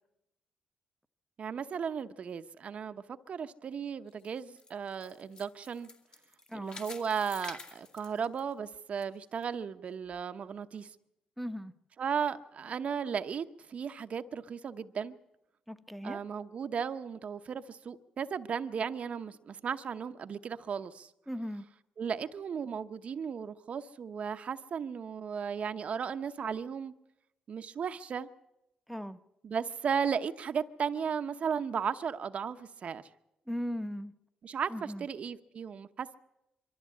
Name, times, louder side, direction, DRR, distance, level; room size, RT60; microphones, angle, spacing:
voice 1, 1.4-5.9 6.5-10.9 12.0-15.2 16.0-21.1 22.0-26.9 27.5-28.3 29.4-33.0 34.4-36.1, right 7 dB, 55° right, 0.8 m, -35 dB
sound 1, 4.1-9.0 9.4-9.5 10.1-10.2, left 3 dB, 40° left, 2.3 m, -49 dB
voice 2, 11.4-11.7 15.7-16.2 21.3-21.7 28.9-29.2 33.5-34.1 34.7-35.1, equal, ahead, 1.0 m, -38 dB
23.5 x 13.5 x 8.4 m
cardioid pair, 80°, 3 cm